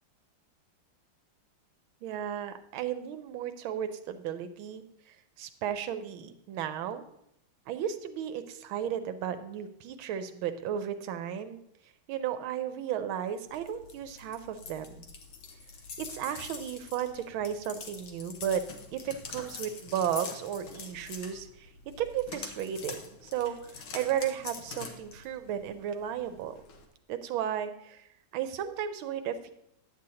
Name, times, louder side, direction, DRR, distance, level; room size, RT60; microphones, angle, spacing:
voice 1, 2.0-4.8 5.4-7.0 7.7-11.6 12.1-15.0 16.0-18.6 18.9-21.7 22.0-26.5 27.1-28.1 28.3-29.5, right 9 dB, 85° right, 9 dB, 1.4 m, -34 dB
sound 1, 13.5-26.8, left 5 dB, 80° left, 1.8 m, -45 dB
10.0 x 7.7 x 2.8 m, 0.78 s
omnidirectional pair, 2.3 m